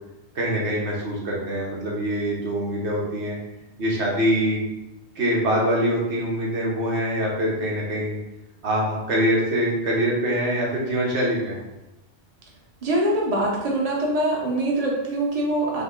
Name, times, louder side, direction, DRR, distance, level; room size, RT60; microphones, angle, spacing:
voice 1, 0.3-3.4 3.8-4.6 5.1-8.2 8.6-11.6, equal, 85° right, -3 dB, 1.3 m, -24 dB
voice 2, 12.8-15.8, right 1 dB, 35° right, -3 dB, 0.9 m, -23 dB
5.5 x 2.1 x 3.7 m, 0.95 s
omnidirectional pair, 1.1 m